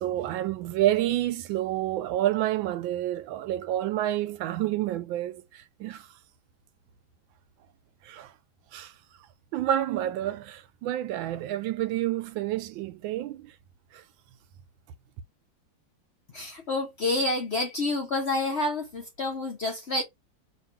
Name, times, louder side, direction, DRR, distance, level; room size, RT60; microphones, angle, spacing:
voice 1, 0.0-6.1 8.0-8.3 8.7-8.9 9.5-13.5 13.9-14.0, right 13 dB, 90° right, 1.3 m, -29 dB
voice 2, 16.3-20.0, left 2 dB, 55° left, 0.7 m, -28 dB
3.0 x 2.9 x 4.5 m
omnidirectional pair, 2.1 m